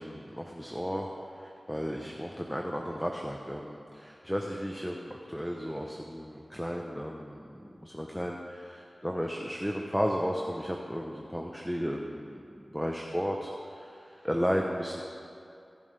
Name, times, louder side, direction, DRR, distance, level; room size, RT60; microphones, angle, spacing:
voice 1, 0.0-15.0, equal, ahead, 0 dB, 1.0 m, -34 dB
20.5 x 7.2 x 3.5 m, 2.6 s
wide cardioid pair, 50°, 0 cm